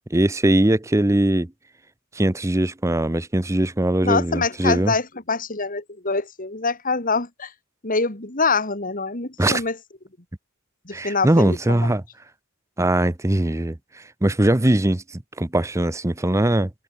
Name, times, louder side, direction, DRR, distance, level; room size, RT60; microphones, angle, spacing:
voice 1, 0.1-1.5 2.1-4.9 9.4-9.6 10.9-12.0 12.8-13.8 14.2-16.7, right 1 dB, 15° right, 0.7 m, -20 dB
voice 2, 4.0-7.5 7.8-9.8 10.9-11.9, left 4 dB, 40° left, 2.9 m, -25 dB
head